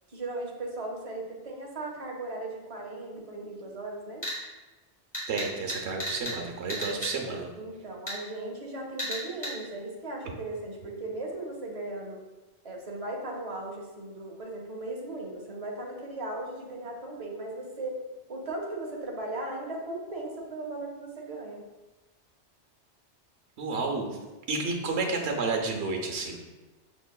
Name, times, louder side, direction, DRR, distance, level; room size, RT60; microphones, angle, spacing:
voice 1, 0.1-4.2 6.7-7.0 7.5-12.2 12.6-18.0 18.3-21.6, right 2 dB, 35° right, -1 dB, 0.8 m, -37 dB
sound 1, 4.2-4.4 5.1-6.4 6.7-7.1 8.1-8.2 9.0-9.5, equal, 15° left, 1.4 m, -33 dB
voice 2, 5.3-7.5 23.6-24.2 24.5-26.4, right 3 dB, 70° right, 2 dB, 1.0 m, -31 dB
6.1 x 2.9 x 2.3 m, 1.2 s
omnidirectional pair, 1.2 m